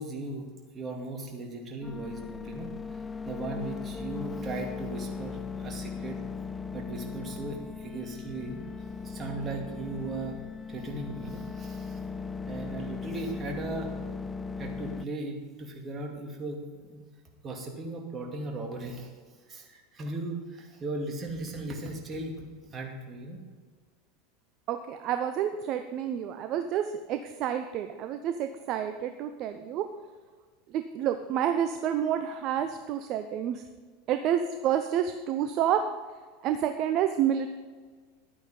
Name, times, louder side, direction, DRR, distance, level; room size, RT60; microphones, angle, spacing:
voice 1, 0.0-2.7 3.3-6.2 6.7-8.7 9.0-10.4 10.7-12.0 12.5-13.9 14.6-17.0 17.4-19.1 19.5-23.4, right 2 dB, 25° right, 1 dB, 2.4 m, -37 dB
sound 1, 1.8-15.1, left 5 dB, 20° left, 0.4 m, -38 dB
voice 2, 24.7-26.8 27.1-29.9 30.7-33.6 34.1-35.8 36.4-37.5, right 9 dB, 45° right, 8 dB, 0.6 m, -29 dB
11.5 x 9.1 x 5.2 m, 1.5 s
figure-of-eight pair, 80°, 0 cm